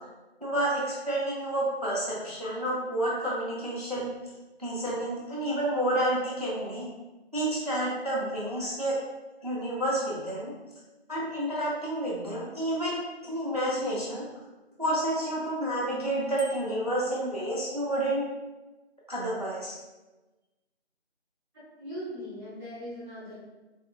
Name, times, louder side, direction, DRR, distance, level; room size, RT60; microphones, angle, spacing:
voice 1, 0.4-4.1 4.6-6.9 7.3-9.0 9.4-10.5 11.1-14.3 14.8-18.3 19.1-19.8, right 1 dB, 35° right, -6 dB, 0.5 m, -30 dB
Bicycle bell, 16.4-17.0, left 1 dB, 90° left, 0.9 m, -46 dB
voice 2, 21.5-23.3, equal, 5° left, -19 dB, 1.1 m, -40 dB
4.0 x 2.7 x 2.4 m, 1.1 s
figure-of-eight pair, 165°, 34 cm